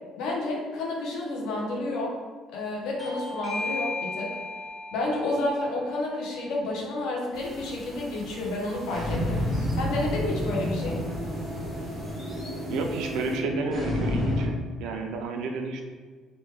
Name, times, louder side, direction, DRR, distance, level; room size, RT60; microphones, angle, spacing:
voice 1, 0.2-2.1 2.5-4.4 4.9-9.4 9.7-11.0, left 2 dB, 75° left, -2 dB, 0.7 m, -30 dB
Bell / Doorbell, 3.0-8.2, left 3 dB, 10° left, 0.6 m, -37 dB
sound 1, 7.3-13.4, equal, 15° right, 1.3 m, -45 dB
sound 2, 8.9-14.5, left 1 dB, 40° left, 0.8 m, -30 dB
voice 2, 12.7-14.5 14.8-15.8, right 4 dB, 75° right, 4 dB, 0.4 m, -31 dB
3.0 x 2.2 x 3.3 m, 1.5 s
cardioid pair, 175°, 0 cm